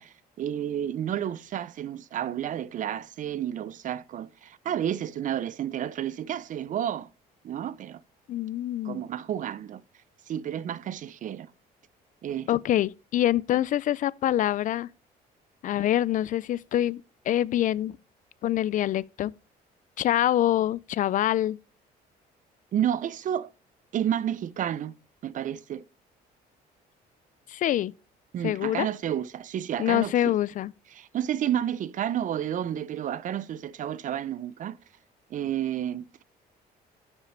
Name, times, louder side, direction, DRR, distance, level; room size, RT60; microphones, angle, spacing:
voice 1, 0.0-7.1 7.4-8.0 8.8-9.8 10.3-11.5 12.2-12.5 22.7-23.5 23.9-24.9 25.2-25.8 28.3-30.3 30.9-34.8 35.3-36.2, right 10 dB, 50° right, 0.6 m, -31 dB
voice 2, 8.3-9.0 12.5-14.9 15.6-18.0 18.4-19.3 20.0-21.6 27.5-27.9 28.4-28.9 29.8-30.7, left 12 dB, 50° left, 0.4 m, -25 dB
7.5 x 6.3 x 7.3 m
cardioid pair, 110°, 17 cm